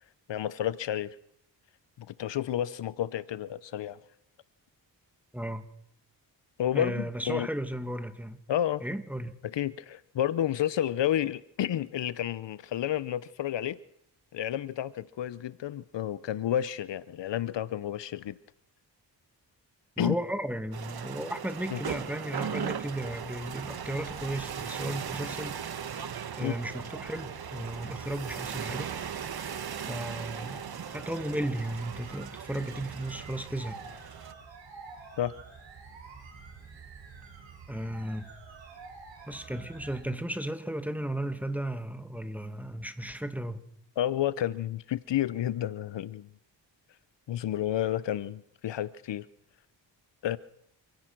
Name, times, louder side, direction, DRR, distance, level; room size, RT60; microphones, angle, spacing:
voice 1, 0.3-1.2 2.0-4.0 6.6-7.5 8.5-8.8 9.4-13.8 14.3-18.4 20.0-20.1 21.7-21.8 26.4-26.5 35.2-35.3 44.0-46.3 47.3-49.3 50.2-50.4, left 11 dB, 75° left, 0.8 m, -30 dB
voice 2, 5.3-5.7 6.7-8.4 8.8-9.3 20.0-25.6 26.3-28.9 29.9-30.6 30.9-33.8 37.7-38.3 39.3-43.6, right 1 dB, 5° right, 2.2 m, -35 dB
sound 1, 20.7-34.3, right 8 dB, 55° right, 1.4 m, -38 dB
sound 2, 22.3-40.0, right 5 dB, 85° right, 5.7 m, -49 dB
28.0 x 16.5 x 6.1 m
cardioid pair, 80°, 43 cm